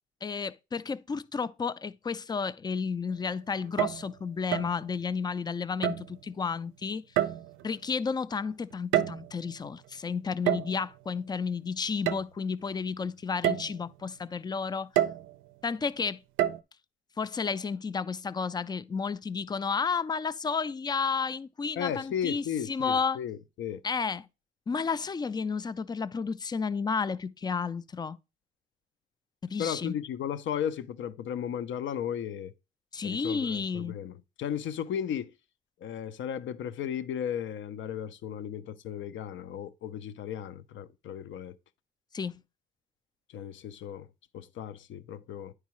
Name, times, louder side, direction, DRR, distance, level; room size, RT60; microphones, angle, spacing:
voice 1, 0.2-7.0 7.6-14.9 15.6-16.2 17.2-23.2 23.8-24.2 24.7-28.2 29.4-29.9 32.9-34.0 42.1-42.4, left 5 dB, 20° left, 0.3 m, -32 dB
sound 1, 3.6-4.1 4.5-4.8 5.8-6.2 7.2-7.7 8.7-9.4 10.5-10.8 12.1-12.2 12.7-12.8 13.4-13.8 15.0-15.3 16.4-16.6, right 12 dB, 85° right, 0.4 m, -28 dB
voice 2, 21.8-23.8 29.6-32.5 33.0-35.3 35.8-41.6 43.3-44.1 44.3-45.5, left 9 dB, 70° left, 0.5 m, -35 dB
9.4 x 4.7 x 3.0 m
cardioid pair, 90°, 20 cm